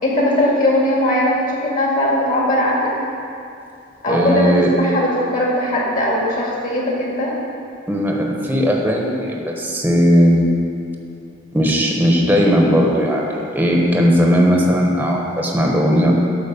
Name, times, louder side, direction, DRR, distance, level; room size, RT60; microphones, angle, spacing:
voice 1, 0.0-2.9 4.0-7.3, left 1 dB, 45° left, -4 dB, 2.3 m, -19 dB
voice 2, 4.1-4.7 7.9-10.5 11.5-16.1, equal, 10° right, -1 dB, 1.0 m, -17 dB
11.5 x 4.6 x 7.1 m, 2.5 s
head